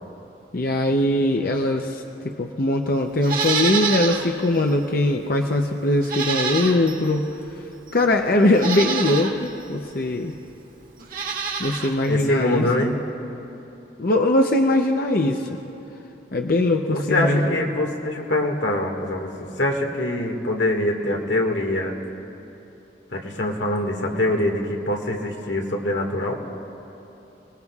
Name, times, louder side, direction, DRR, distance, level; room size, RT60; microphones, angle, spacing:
voice 1, 0.5-7.3 7.9-10.3 11.6-12.7 14.0-15.5 16.3-17.6, left 1 dB, 55° left, 3 dB, 0.7 m, -21 dB
Livestock farm animals working animals, 3.2-4.3 4.7-4.8 6.0-7.1 7.9-8.0 8.5-9.3 11.0-11.9 12.2-12.3, right 5 dB, 50° right, 1.7 m, -26 dB
voice 2, 12.1-13.0 16.9-22.0 23.1-26.4, left 1 dB, 90° left, 1 dB, 1.9 m, -24 dB
30.0 x 20.0 x 2.4 m, 3.0 s
head